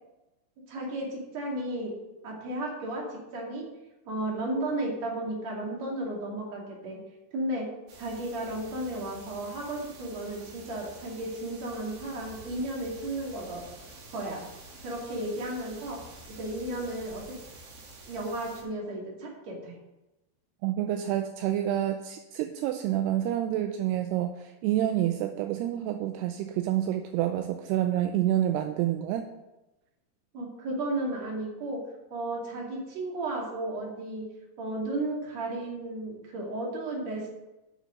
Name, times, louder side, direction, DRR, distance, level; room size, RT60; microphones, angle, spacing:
voice 1, 0.7-1.9 2.2-3.7 4.1-7.0 7.3-7.7 8.0-13.6 14.1-14.4 14.8-16.0 16.4-17.2 18.1-19.7 30.3-31.8 32.1-34.2 34.6-37.3, right 1 dB, 45° right, -2 dB, 3.1 m, -34 dB
sound 1, 7.9-18.6, right 2 dB, 65° right, 3.6 m, -48 dB
voice 2, 20.6-29.2, right 12 dB, 85° right, 6 dB, 2.4 m, -28 dB
9.5 x 6.3 x 6.4 m, 1.0 s
omnidirectional pair, 5.0 m